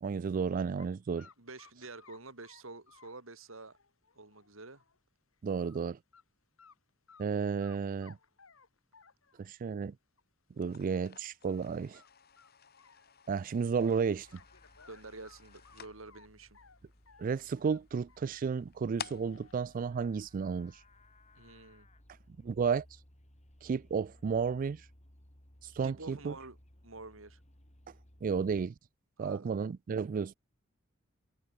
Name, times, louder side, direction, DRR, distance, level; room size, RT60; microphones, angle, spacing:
voice 1, 0.0-1.3 5.4-6.0 7.2-8.2 9.4-9.9 10.6-12.0 13.3-14.3 17.2-20.7 22.4-22.8 23.6-24.8 25.8-26.3 28.2-28.7 29.2-30.3, right 6 dB, 40° right, 0.3 m, -32 dB
sound 1, 0.8-0.9 1.2-5.0 5.3-5.8 6.1-6.2 6.6-7.3 7.6-9.5 10.2-10.3 10.6-10.7 11.0-11.1 11.5-11.7 11.9-13.5 13.8-16.3 16.5-18.4 18.8-19.5, left 5 dB, 90° left, 2.8 m, -61 dB
voice 2, 1.4-3.8 4.2-4.8 14.9-16.6 21.4-21.9 25.8-26.6 26.8-27.4 29.2-29.5, right 3 dB, 80° right, 3.8 m, -48 dB
sound 2, 10.5-20.9, left 7 dB, 50° left, 3.2 m, -52 dB
Livestock farm animals working animals, 13.7-28.7, left 1 dB, 35° left, 5.0 m, -61 dB
head